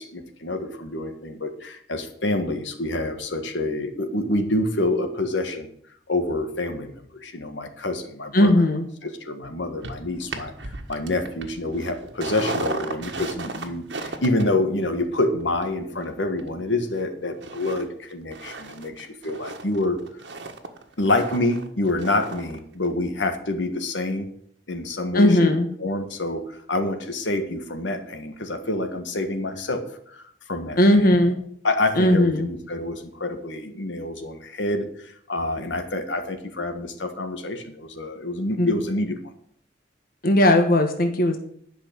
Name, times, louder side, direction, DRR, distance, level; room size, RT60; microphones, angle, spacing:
voice 1, 0.0-5.7 6.1-8.5 9.0-20.0 21.0-24.3 24.7-25.5 25.8-30.8 31.6-39.2, left 2 dB, 85° left, 6 dB, 1.6 m, -27 dB
voice 2, 8.3-8.9 25.1-25.7 30.8-31.4 31.9-32.5 38.6-38.7 40.2-41.4, left 1 dB, 50° left, 5 dB, 1.3 m, -18 dB
sound 1, 9.8-17.0 17.4-17.8 18.1-22.6 22.9-23.0, right 3 dB, 80° right, 1.5 m, -36 dB
11.0 x 5.8 x 8.8 m, 0.64 s
head